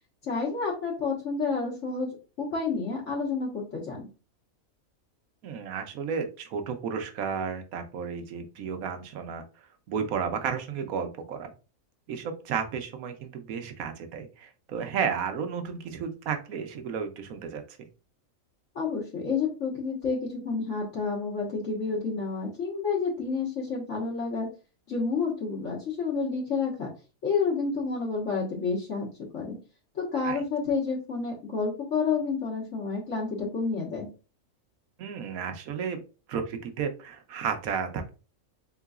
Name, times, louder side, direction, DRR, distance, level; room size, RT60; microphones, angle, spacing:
voice 1, 0.2-2.1 2.4-4.0 18.7-24.5 24.9-26.9 27.2-29.1 29.3-29.6 29.9-34.1, left 4 dB, 60° left, -3 dB, 1.6 m, -29 dB
voice 2, 5.4-9.4 9.9-11.5 12.1-17.9 30.2-30.4 35.0-36.0 36.3-38.1, right 6 dB, 75° right, 7 dB, 1.2 m, -33 dB
3.9 x 3.8 x 2.3 m, 0.34 s
omnidirectional pair, 1.5 m